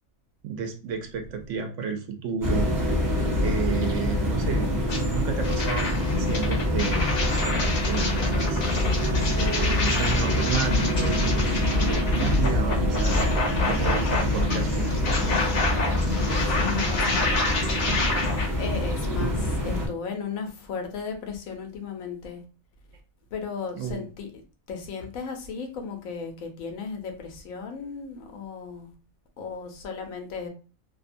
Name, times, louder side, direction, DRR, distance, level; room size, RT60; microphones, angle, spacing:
voice 1, 0.4-2.7 3.4-7.1 7.9-8.6 9.3-13.2 13.7-15.4 19.2-19.3 23.8-24.0, right 6 dB, 70° right, 0.9 m, -32 dB
sound 1, 2.4-19.9, left 1 dB, 25° right, 0.4 m, -25 dB
sound 2, 4.9-5.0 5.4-18.5, left 3 dB, 55° left, 0.8 m, -29 dB
voice 2, 16.1-17.6 18.6-22.4 23.3-24.3 24.7-28.9 29.4-30.5, left 5 dB, 80° left, 1.1 m, -35 dB
2.7 x 2.2 x 2.5 m
omnidirectional pair, 1.4 m